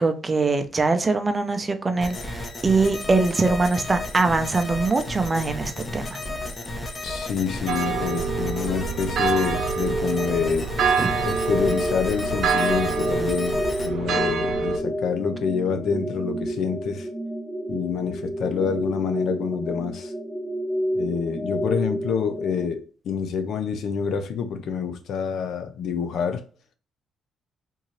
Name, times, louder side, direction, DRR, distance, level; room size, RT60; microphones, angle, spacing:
voice 1, 0.0-6.2 11.0-11.1, right 3 dB, 25° right, 0.6 m, -23 dB
sound 1, 2.0-13.9, left 2 dB, 30° left, 1.0 m, -33 dB
voice 2, 7.0-10.7 11.2-13.6 13.8-17.1 17.7-20.1 21.0-26.4, left 6 dB, 75° left, 0.6 m, -27 dB
sound 2, 7.7-14.8, right 5 dB, 65° right, 0.8 m, -26 dB
sound 3, 10.8-22.7, equal, 15° left, 0.6 m, -30 dB
3.8 x 2.7 x 3.1 m
cardioid pair, 90°, 0 cm